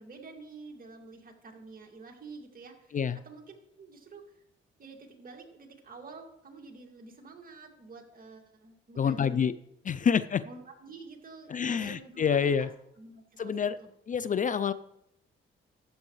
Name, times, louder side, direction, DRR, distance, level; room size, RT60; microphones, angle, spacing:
voice 1, 0.0-3.0 3.2-4.4 4.8-9.4 9.9-10.1 10.4-12.7 13.0-13.9, right 4 dB, 45° right, 2 dB, 2.2 m, -49 dB
voice 2, 9.0-9.5 9.8-10.4 11.5-12.7 13.4-13.8 14.1-14.7, left 7 dB, 40° left, 15 dB, 0.4 m, -27 dB
13.0 x 8.3 x 3.2 m, 0.80 s
cardioid pair, 80°, 21 cm